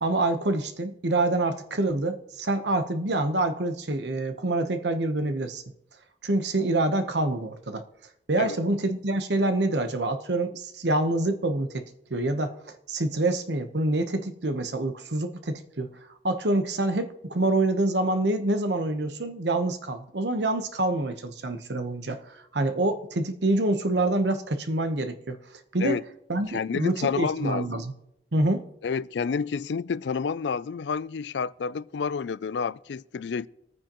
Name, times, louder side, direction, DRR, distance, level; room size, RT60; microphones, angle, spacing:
voice 1, 0.0-5.6 6.2-7.8 8.3-11.8 12.1-12.6 12.9-15.9 16.2-25.4 25.7-26.0 26.3-27.9 28.3-28.6, right 2 dB, 70° right, 1.1 m, -26 dB
voice 2, 26.5-27.8 28.8-33.5, left 5 dB, 75° left, 0.4 m, -29 dB
23.5 x 9.4 x 3.0 m
head